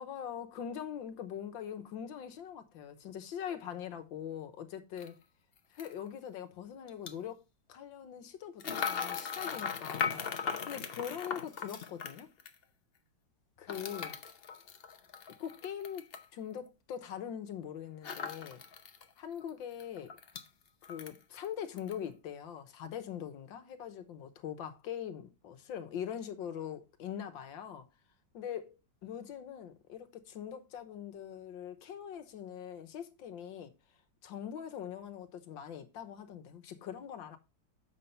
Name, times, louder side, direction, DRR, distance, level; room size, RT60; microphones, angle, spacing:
voice 1, 0.0-5.2 5.7-7.4 7.7-12.3 13.6-14.1 15.4-16.0 16.3-18.6 19.2-20.2 20.8-27.8 28.3-28.7 29.0-33.7 34.2-37.4, left 9 dB, 80° left, 1.7 m, -42 dB
sound 1, 5.0-5.1 5.8-5.9 6.9-7.1 8.6-12.6 13.7-16.3 18.0-19.0 19.4-19.5 19.8-20.5 20.8-21.5 21.8-22.0, left 6 dB, 60° left, 0.6 m, -38 dB
7.4 x 5.5 x 4.4 m
omnidirectional pair, 2.1 m